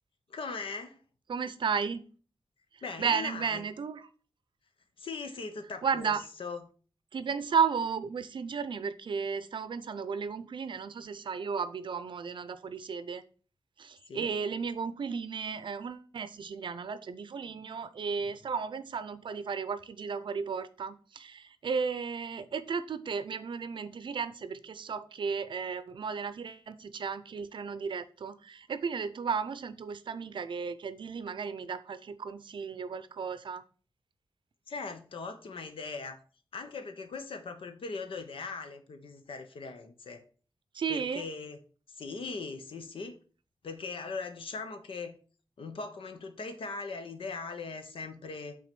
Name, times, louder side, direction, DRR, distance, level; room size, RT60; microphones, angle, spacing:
voice 1, 0.3-1.0 2.8-3.6 5.0-6.7 14.1-14.3 34.7-36.2 36.5-40.2 40.9-41.6 41.9-43.2 43.6-45.2 45.6-48.6, left 4 dB, 80° left, 8 dB, 1.0 m, -40 dB
voice 2, 1.3-2.0 3.0-4.1 5.8-6.2 7.1-13.2 13.8-33.6 40.7-41.3, right 6 dB, 65° right, 14 dB, 0.5 m, -34 dB
6.0 x 4.0 x 5.9 m, 0.39 s
wide cardioid pair, 170°, 9 cm